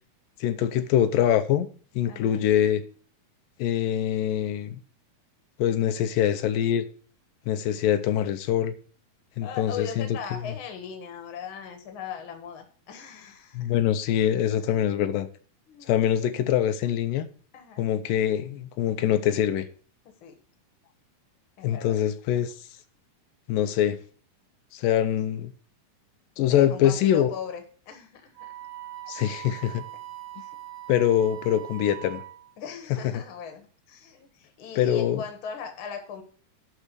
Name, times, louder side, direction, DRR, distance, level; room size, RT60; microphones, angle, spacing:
voice 1, 0.4-1.7 2.0-2.8 3.6-4.8 5.6-6.8 7.5-8.7 9.4-10.4 13.5-15.3 15.8-17.3 17.8-19.7 21.6-22.5 23.5-24.0 24.7-25.5 26.4-27.3 29.1-29.8 30.9-32.2 33.1-33.2 34.8-35.2, left 10 dB, 85° left, 2.4 m, -24 dB
voice 2, 2.1-2.5 9.4-13.7 15.7-16.0 17.5-17.9 20.2-20.4 21.6-22.0 26.5-28.5 29.0-29.1 29.5-29.7 30.4-30.6 32.6-36.2, left 7 dB, 50° left, 1.7 m, -39 dB
Wind instrument woodwind instrument, 28.4-32.5, right 14 dB, 80° right, 2.7 m, -41 dB
11.5 x 4.2 x 6.7 m
omnidirectional pair, 3.9 m